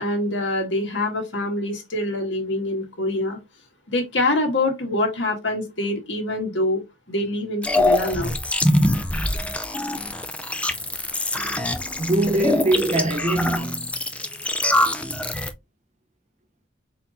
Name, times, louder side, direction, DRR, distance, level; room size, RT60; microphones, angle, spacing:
voice 1, 0.0-3.4 3.9-6.8 7.1-8.3, left 1 dB, 65° left, 1.6 m, -25 dB
sound 1, 7.6-15.5, left 1 dB, 5° left, 0.4 m, -24 dB
voice 2, 12.0-14.0, right 2 dB, 35° right, 0.6 m, -23 dB
4.3 x 4.0 x 2.5 m
head